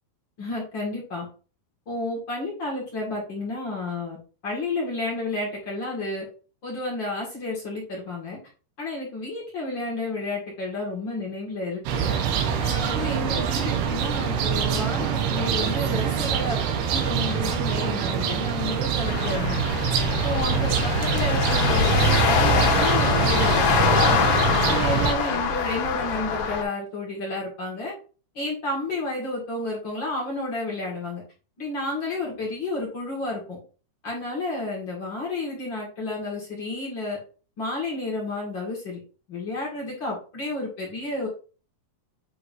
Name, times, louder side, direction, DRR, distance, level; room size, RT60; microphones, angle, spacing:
voice 1, 0.4-1.3 1.9-4.2 4.4-6.2 6.6-8.4 8.8-12.2 12.6-16.6 16.9-19.6 20.1-24.3 24.6-27.9 28.3-31.2 31.6-33.6 34.0-37.2 37.6-39.0 39.3-41.3, left 2 dB, 40° left, -4 dB, 1.9 m, -31 dB
sound 1, 11.9-25.1, right 7 dB, 90° right, 3.0 m, -25 dB
sound 2, 19.1-26.6, left 5 dB, 90° left, 2.9 m, -23 dB
8.4 x 4.6 x 2.6 m, 0.37 s
omnidirectional pair, 4.4 m